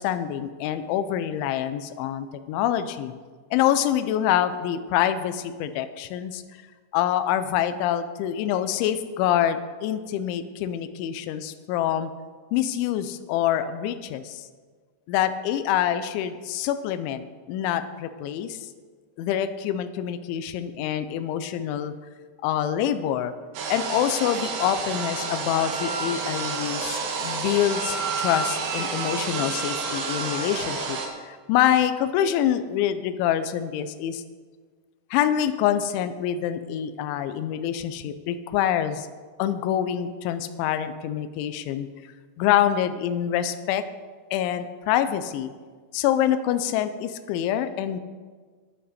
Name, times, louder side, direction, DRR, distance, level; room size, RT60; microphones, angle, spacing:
voice 1, 0.0-3.1 3.5-6.4 6.9-12.1 12.5-14.4 15.1-18.6 19.2-21.9 22.4-23.3 23.7-31.0 31.2-34.2 35.1-39.1 39.4-41.9 42.4-43.8 44.3-45.5 45.9-48.0, left 10 dB, 85° left, 11 dB, 3.1 m, -26 dB
sound 1, 23.5-31.1, right 4 dB, 65° right, 3.0 m, -29 dB
15.0 x 10.0 x 4.2 m, 1.5 s
omnidirectional pair, 5.4 m